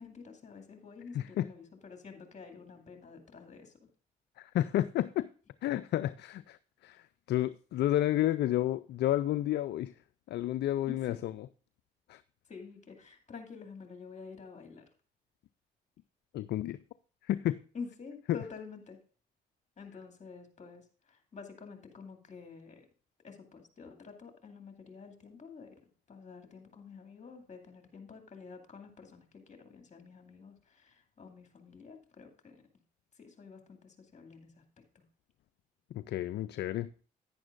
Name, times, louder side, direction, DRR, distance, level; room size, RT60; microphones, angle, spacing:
voice 1, 0.0-3.8 10.9-11.2 12.5-14.8 17.7-19.0 19.8-22.9 23.2-32.7 33.1-34.6 34.9-35.0, left 5 dB, 35° left, 2.3 m, -49 dB
voice 2, 1.1-1.5 4.4-5.3 5.6-6.6 6.8-9.9 10.3-11.3 12.1-12.2 16.3-16.8 17.3-17.6 35.9-36.9, left 13 dB, 60° left, 0.4 m, -31 dB
10.5 x 9.6 x 2.5 m
hypercardioid pair, 55°, 20 cm